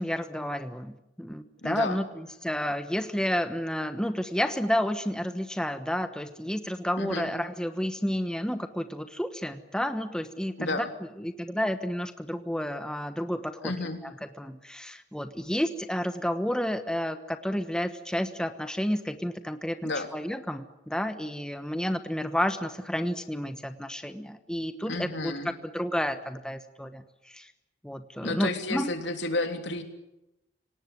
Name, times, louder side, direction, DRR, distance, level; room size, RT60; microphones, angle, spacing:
voice 1, 0.0-10.9 11.2-13.7 14.4-25.3 25.7-27.5 27.8-28.9, equal, 5° left, 8 dB, 1.2 m, -31 dB
voice 2, 1.6-2.0 7.0-7.3 10.6-10.9 13.6-14.0 19.8-20.1 24.9-25.5 28.2-29.8, left 2 dB, 80° left, 5 dB, 3.3 m, -31 dB
26.5 x 18.5 x 9.5 m, 0.93 s
head